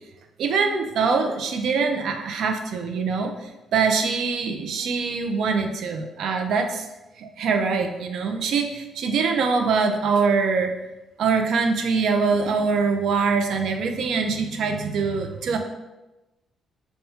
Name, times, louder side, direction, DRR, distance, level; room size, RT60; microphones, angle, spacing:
voice 1, 0.4-6.9 7.2-10.7 11.2-15.6, right 5 dB, 75° right, 5 dB, 0.4 m, -23 dB
5.5 x 2.2 x 2.8 m, 1.0 s
cardioid pair, 90°, 0 cm